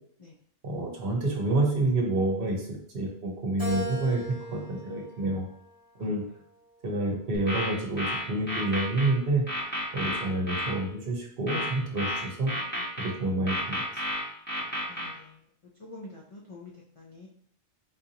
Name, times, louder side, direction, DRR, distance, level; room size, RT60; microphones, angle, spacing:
voice 1, 0.6-5.5 6.0-6.2 6.8-9.4 9.9-12.5 13.0-13.8, right 2 dB, 60° right, -1 dB, 0.9 m, -28 dB
Keyboard (musical), 3.6-6.1 6.7-7.9, right 1 dB, 35° left, 1.1 m, -40 dB
sound 1, 7.3-9.1 9.5-10.7 11.5-13.1 13.5-15.1, equal, 10° left, 1.0 m, -31 dB
voice 2, 14.9-15.4 15.8-17.3, left 2 dB, 55° left, -2 dB, 0.3 m, -47 dB
3.9 x 2.6 x 2.7 m, 0.66 s
omnidirectional pair, 1.2 m